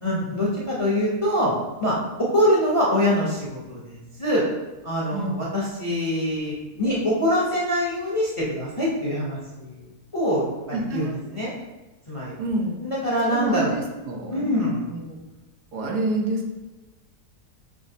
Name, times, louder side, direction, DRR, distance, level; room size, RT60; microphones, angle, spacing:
voice 1, 0.0-1.5 1.8-4.4 4.8-9.8 10.1-10.4 10.9-11.5 12.1-12.3 12.8-13.7 14.3-14.8, equal, 25° left, -6 dB, 0.7 m, -24 dB
voice 2, 10.7-11.2 12.4-12.8 13.3-14.5 14.9-15.2 15.7-16.5, right 2 dB, 85° right, 0 dB, 1.4 m, -28 dB
6.1 x 3.1 x 2.7 m, 1.1 s
omnidirectional pair, 1.7 m